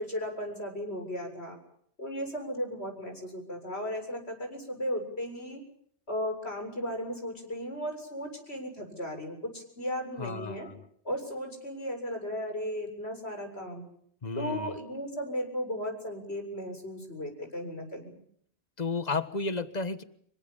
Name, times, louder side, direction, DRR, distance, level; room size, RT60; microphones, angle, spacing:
voice 1, 0.0-1.6 2.0-5.6 6.1-10.7 11.0-13.8 14.4-18.1, equal, 75° left, 5 dB, 7.6 m, -35 dB
voice 2, 10.2-10.8 14.2-14.8 18.8-20.0, left 3 dB, 40° left, 13 dB, 1.5 m, -33 dB
27.0 x 24.5 x 7.1 m, 0.66 s
omnidirectional pair, 1.1 m